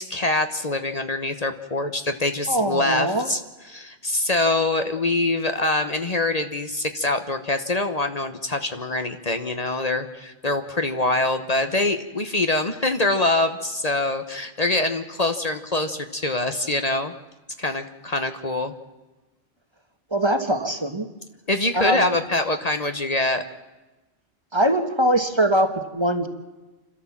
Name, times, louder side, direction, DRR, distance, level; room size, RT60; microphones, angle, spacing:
voice 1, 0.0-3.4 3.7-17.1 17.6-18.7 21.5-23.4, left 2 dB, 40° left, 7 dB, 1.2 m, -24 dB
voice 2, 2.5-3.3 20.1-21.1 21.7-22.2 24.5-26.3, right 1 dB, 25° right, 7 dB, 1.3 m, -22 dB
29.0 x 13.0 x 7.3 m, 1.1 s
omnidirectional pair, 1.1 m